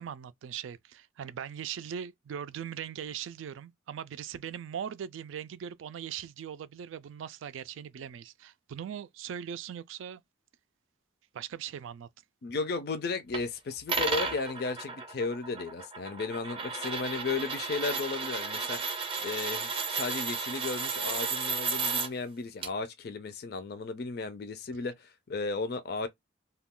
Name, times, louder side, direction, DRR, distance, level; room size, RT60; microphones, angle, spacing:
voice 1, 0.0-10.2 11.3-12.1, right 8 dB, 85° right, 0.3 m, -40 dB
voice 2, 12.4-18.8 19.2-26.1, left 4 dB, 55° left, 0.4 m, -34 dB
sound 1, 13.3-13.4 13.9-22.1 22.6-22.7, right 4 dB, 25° right, 0.6 m, -33 dB
2.3 x 2.2 x 3.6 m
head